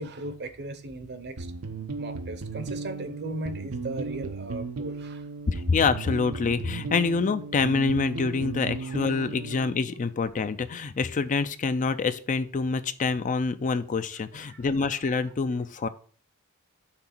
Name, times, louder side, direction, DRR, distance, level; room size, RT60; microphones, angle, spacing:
voice 1, 0.0-1.5 2.0-5.3 8.8-9.0 14.3-15.0 15.8-15.9, right 2 dB, 50° right, 0.8 m, -38 dB
sound 1, 1.4-9.8, right 3 dB, 85° right, 0.8 m, -35 dB
voice 2, 5.5-15.9, left 4 dB, 35° left, 0.4 m, -26 dB
5.9 x 3.8 x 5.9 m
head